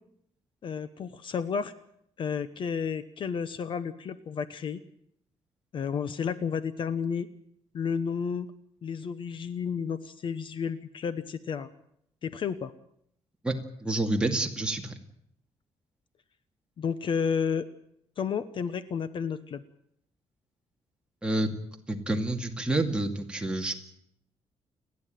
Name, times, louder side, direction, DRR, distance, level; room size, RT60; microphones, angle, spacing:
voice 1, 0.6-1.7 2.2-4.8 5.7-7.3 7.7-8.5 8.8-11.7 12.2-12.7 16.8-17.7 18.2-19.6, left 6 dB, 50° left, 13 dB, 1.0 m, -31 dB
voice 2, 13.8-14.9 21.2-21.5 21.9-23.7, right 2 dB, 10° right, 2 dB, 2.2 m, -28 dB
29.5 x 11.0 x 9.2 m, 0.73 s
cardioid pair, 160°, 11 cm